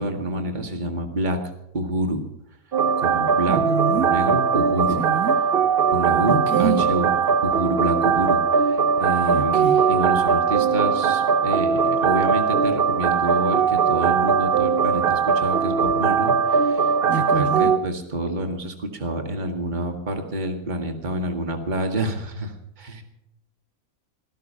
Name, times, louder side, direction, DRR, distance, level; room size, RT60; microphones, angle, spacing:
voice 1, 0.0-1.4 1.7-2.2 3.0-3.6 3.9-5.0 5.9-7.1 7.4-16.9 17.3-22.5 22.8-23.0, right 1 dB, 30° right, 3 dB, 2.1 m, -27 dB
sound 1, 2.7-17.8, right 6 dB, 50° right, 0.8 m, -20 dB
voice 2, 3.5-4.1 5.0-5.3 6.3-6.9 9.3-9.8 17.1-17.7, right 6 dB, 80° right, 3 dB, 2.4 m, -26 dB
18.5 x 13.5 x 5.6 m, 0.79 s
omnidirectional pair, 1.5 m